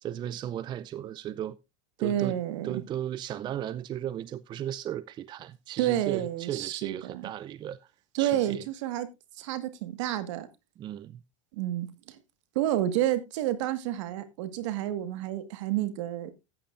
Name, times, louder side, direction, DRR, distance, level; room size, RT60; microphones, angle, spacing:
voice 1, 0.0-1.6 2.0-2.4 2.6-7.9 8.2-8.7 10.8-11.2, right 11 dB, 25° right, 0.5 m, -36 dB
voice 2, 2.0-2.8 5.8-7.3 8.1-9.1 9.4-10.5 11.5-12.2 12.5-16.3, right 12 dB, 65° right, 1.6 m, -30 dB
14.5 x 8.8 x 2.5 m
hypercardioid pair, 115°, 17 cm